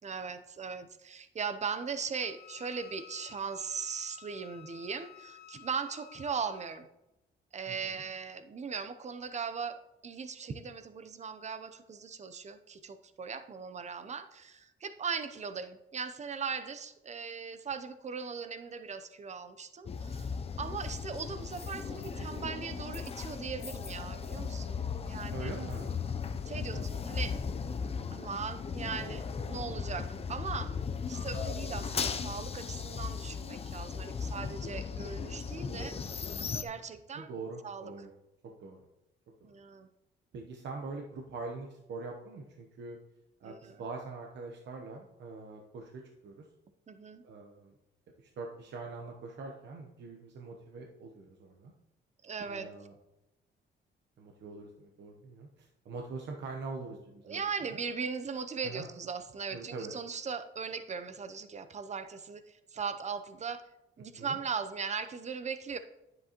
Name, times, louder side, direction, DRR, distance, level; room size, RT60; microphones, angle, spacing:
voice 1, 0.0-6.9 7.5-9.8 10.0-25.5 26.5-27.4 28.1-30.7 31.1-35.9 36.6-37.3 37.6-37.9 39.4-39.9 43.4-43.8 46.9-47.2 52.2-52.7 57.3-63.6 64.0-65.8, right 6 dB, 35° right, 10 dB, 0.7 m, -39 dB
Wind instrument woodwind instrument, 2.2-6.8, left 14 dB, 55° left, 0.9 m, -53 dB
voice 2, 7.7-8.0 25.3-25.9 26.7-26.9 34.6-35.0 35.8-36.0 37.1-38.1 38.6-38.8 40.3-43.0 43.4-46.4 47.2-47.7 48.2-51.7 52.5-52.9 54.2-57.4 57.7-57.8 58.6-58.9 59.5-59.9 64.2-64.4, right 3 dB, 65° right, 1 dB, 1.0 m, -43 dB
sound 1, 19.9-36.6, left 6 dB, 30° left, 0.5 m, -37 dB
9.8 x 7.7 x 3.0 m, 0.93 s
cardioid pair, 90°, 20 cm